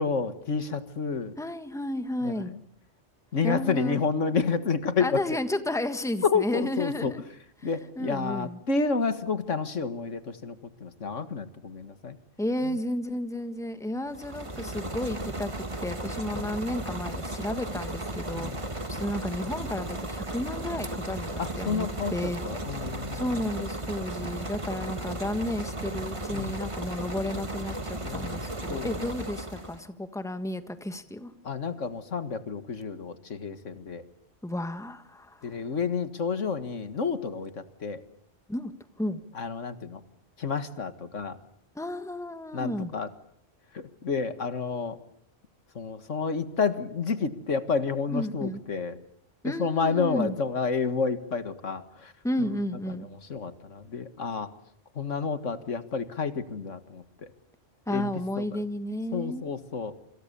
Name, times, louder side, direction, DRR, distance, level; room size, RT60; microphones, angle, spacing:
voice 1, 0.0-1.3 2.2-2.3 3.3-5.2 6.2-7.1 7.6-12.2 16.3-16.5 18.4-18.6 21.4-23.2 24.8-24.9 26.3-26.6 28.0-28.9 31.4-34.0 35.4-37.5 37.8-38.0 39.4-40.0 40.4-41.4 42.5-43.1 43.7-45.0 45.8-48.9 49.4-52.1 53.3-54.5 55.0-57.0 57.9-58.1 58.4-58.6 59.1-59.9, left 5 dB, 90° left, 10 dB, 2.1 m, -30 dB
voice 2, 1.4-2.5 3.4-4.0 5.0-7.2 7.6-8.6 12.4-22.4 23.1-31.3 34.4-35.6 38.5-38.7 39.0-39.2 41.7-42.9 48.1-48.6 49.4-50.4 52.2-53.1 57.9-59.4, left 1 dB, 5° left, 9 dB, 1.5 m, -32 dB
sound 1, 14.1-29.9, right 1 dB, 25° right, 1.8 m, -35 dB
27.5 x 25.5 x 7.0 m, 0.67 s
omnidirectional pair, 1.2 m